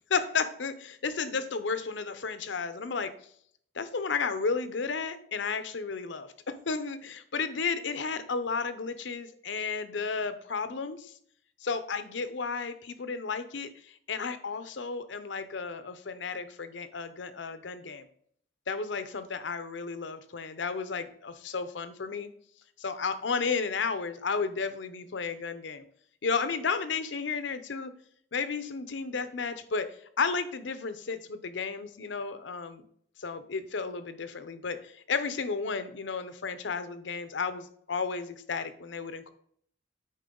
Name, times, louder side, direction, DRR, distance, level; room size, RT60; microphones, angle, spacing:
voice 1, 0.1-3.1 3.7-11.1 11.6-18.1 18.7-22.3 22.8-25.8 26.2-27.9 28.3-29.9 30.2-32.8 33.2-39.3, left 5 dB, 70° left, 11 dB, 0.7 m, -33 dB
9.3 x 4.5 x 3.8 m, 0.63 s
head